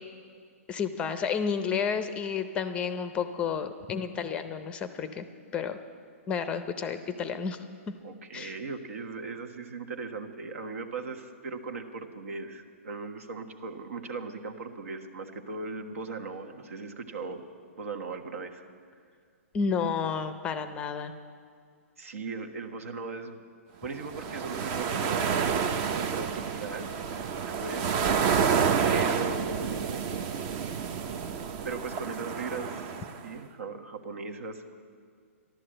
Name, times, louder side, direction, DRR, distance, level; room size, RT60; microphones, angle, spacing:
voice 1, 0.7-5.3 5.5-5.8 6.3-7.6 8.3-8.6 19.5-21.1, left 6 dB, 15° left, 10 dB, 0.6 m, -31 dB
voice 2, 8.0-17.4 17.8-18.6 22.0-23.4 23.8-25.4 26.1-27.0 27.5-28.0 28.8-30.0 31.6-33.0 33.2-34.7, right 4 dB, 70° right, 6 dB, 1.4 m, -38 dB
sound 1, 24.0-33.3, right 6 dB, 30° right, 0.6 m, -29 dB
13.0 x 11.5 x 7.8 m, 2.1 s
hypercardioid pair, 150°, 8 cm